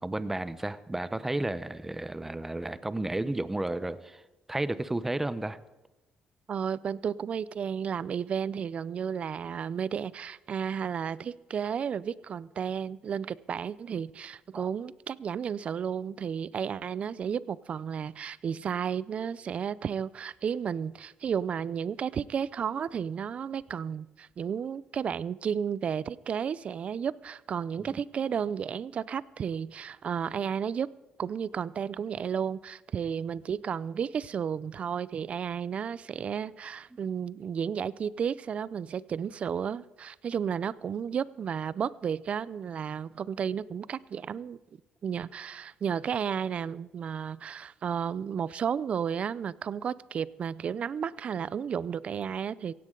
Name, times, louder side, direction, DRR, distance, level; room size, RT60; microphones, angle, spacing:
voice 1, 0.0-4.2 4.5-5.6 27.8-27.9, right 2 dB, 10° right, 14 dB, 0.7 m, -32 dB
voice 2, 6.5-30.9 31.2-44.6 45.0-52.7, right 7 dB, 45° right, 20 dB, 0.5 m, -33 dB
16.5 x 16.0 x 3.8 m, 1.0 s
cardioid pair, 100°, 3 cm